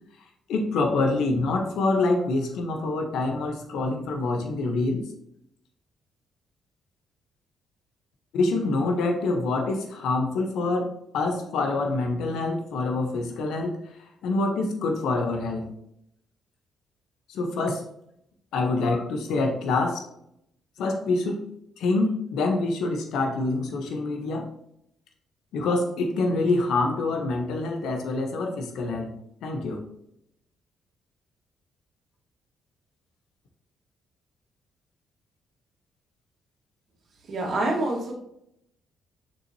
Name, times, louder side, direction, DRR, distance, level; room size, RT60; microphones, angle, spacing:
voice 1, 0.5-5.0 8.3-13.8 14.2-15.7 17.3-17.8 18.5-20.0 20.8-21.4 21.8-24.5 25.5-29.8, left 3 dB, 80° left, 4 dB, 1.2 m, -26 dB
voice 2, 37.3-38.1, right 2 dB, 55° right, -1 dB, 2.2 m, -26 dB
6.7 x 6.0 x 3.1 m, 0.75 s
cardioid pair, 90°, 0 cm